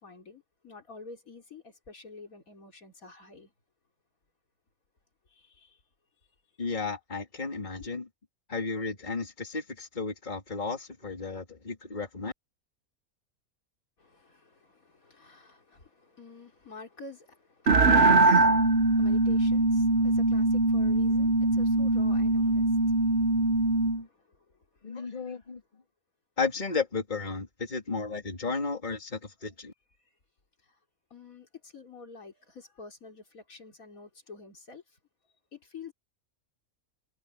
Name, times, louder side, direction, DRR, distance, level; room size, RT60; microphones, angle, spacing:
voice 1, 0.0-3.5 5.4-5.7 7.8-7.9 14.0-24.1 25.0-25.3 31.1-34.8 35.5-35.9, left 3 dB, 75° left, 3.8 m, -48 dB
voice 2, 6.6-8.0 8.5-12.3 24.8-25.6 26.4-29.7, left 4 dB, 30° left, 2.9 m, -33 dB
sound 1, 17.7-24.0, right 2 dB, 50° right, 1.2 m, -22 dB
omnidirectional pair, 1.5 m